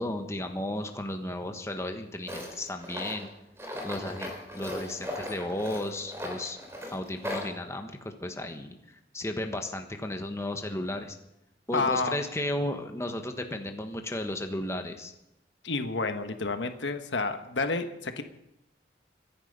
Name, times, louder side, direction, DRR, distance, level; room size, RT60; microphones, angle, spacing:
voice 1, 0.0-3.3 3.8-6.6 6.9-8.8 9.1-11.2 11.7-15.1, left 1 dB, 15° left, 5 dB, 1.4 m, -34 dB
Tools, 2.3-7.5, left 1 dB, 15° right, 3.3 m, -38 dB
voice 2, 11.7-12.2 15.6-18.2, left 3 dB, 75° left, 8 dB, 1.3 m, -29 dB
24.0 x 10.5 x 5.3 m, 0.87 s
head